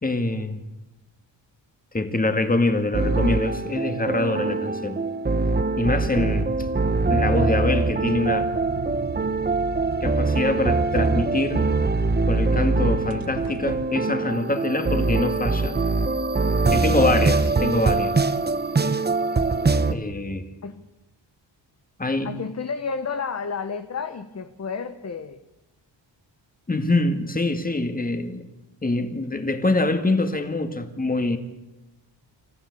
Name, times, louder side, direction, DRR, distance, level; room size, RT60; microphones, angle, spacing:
voice 1, 0.0-0.6 1.9-5.0 5.8-6.5 7.1-8.5 10.0-11.6 12.2-15.8 16.7-18.2 19.9-20.5 22.0-22.3 26.7-28.5 28.8-31.4, left 2 dB, 20° left, 2.1 m, -24 dB
sound 1, 2.9-19.9, right 3 dB, 20° right, 0.9 m, -23 dB
sound 2, 6.2-13.8, right 6 dB, 50° right, 1.3 m, -36 dB
voice 2, 22.2-25.4, left 5 dB, 35° left, 1.1 m, -31 dB
28.0 x 15.0 x 8.5 m
wide cardioid pair, 135°, 45 cm